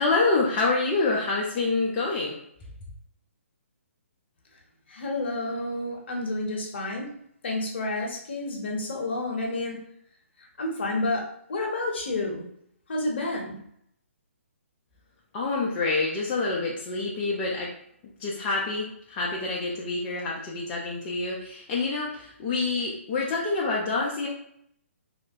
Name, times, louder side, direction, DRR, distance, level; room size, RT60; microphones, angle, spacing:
voice 1, 0.0-2.4 15.3-17.7 18.2-24.3, left 3 dB, 20° left, -4 dB, 0.4 m, -27 dB
voice 2, 4.9-7.1 7.4-9.8 10.6-12.4 12.9-13.6, left 2 dB, 50° left, 0 dB, 0.7 m, -30 dB
3.1 x 2.1 x 2.6 m, 0.70 s
figure-of-eight pair, 135°, 7 cm